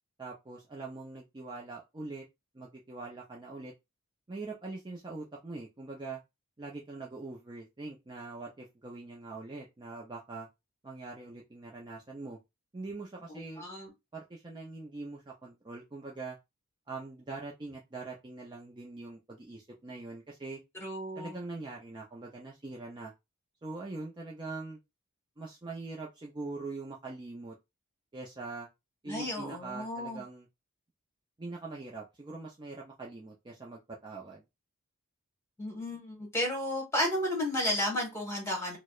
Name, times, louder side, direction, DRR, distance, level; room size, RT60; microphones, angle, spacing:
voice 1, 0.2-2.2 2.5-3.7 4.3-6.2 6.6-10.5 10.8-12.4 12.7-13.6 14.1-16.4 16.9-20.6 21.1-23.1 23.6-24.8 25.4-27.6 28.1-28.7 29.0-30.5 31.4-34.4, right 3 dB, 20° right, 0.4 m, -43 dB
voice 2, 13.3-13.9 20.8-21.3 29.1-30.2 35.6-38.8, left 1 dB, 10° left, 1.3 m, -33 dB
4.5 x 2.1 x 2.4 m
head